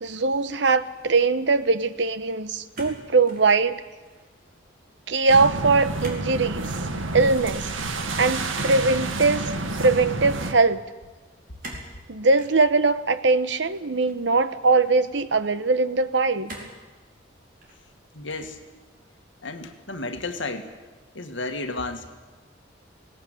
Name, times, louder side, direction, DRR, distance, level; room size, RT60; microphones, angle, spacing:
voice 1, 0.0-3.8 5.1-6.7 7.1-7.7 8.2-9.5 9.8-10.8 12.1-16.5, right 3 dB, 65° right, 12 dB, 1.0 m, -21 dB
sound 1, 2.7-3.5 3.9-4.3 6.0-6.3 6.5-6.8 8.5-9.3 11.6-11.9 12.4-12.6 13.5-14.3 15.0-15.1 16.5-16.8 17.4-17.9 18.3-18.6, right 1 dB, 45° right, 4.4 m, -42 dB
sound 2, 5.3-10.5, right 2 dB, 90° right, 1.7 m, -29 dB
voice 2, 18.1-18.6 19.4-20.7 21.1-22.1, left 2 dB, 75° left, 6 dB, 2.0 m, -32 dB
19.0 x 18.0 x 9.3 m, 1.3 s
head